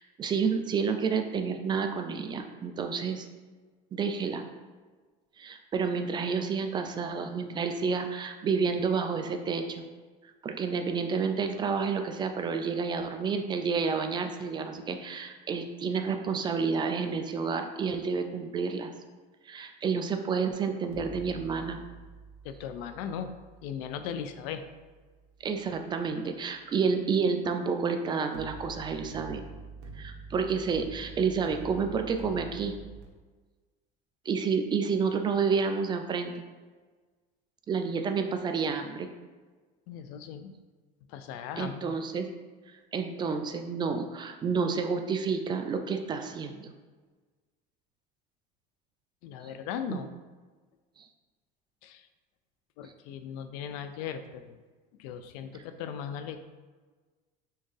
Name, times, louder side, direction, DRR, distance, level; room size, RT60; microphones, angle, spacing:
voice 1, 0.0-3.3 3.9-4.4 5.4-9.8 10.4-18.9 19.5-21.8 25.4-29.4 29.9-32.8 34.3-36.3 37.7-39.1 41.6-42.3 42.9-46.7 49.9-50.0, right 5 dB, 25° right, 6 dB, 0.3 m, -30 dB
sound 1, 20.9-25.9 28.3-33.0, right 3 dB, 85° right, 0.9 m, -47 dB
voice 2, 22.4-23.3 23.6-24.6 39.9-40.5 41.1-42.0 49.2-50.1 51.8-52.0 52.8-54.6 55.0-56.4, left 8 dB, 80° left, 9 dB, 0.5 m, -38 dB
4.4 x 3.5 x 3.2 m, 1.4 s
cardioid pair, 145°, 20 cm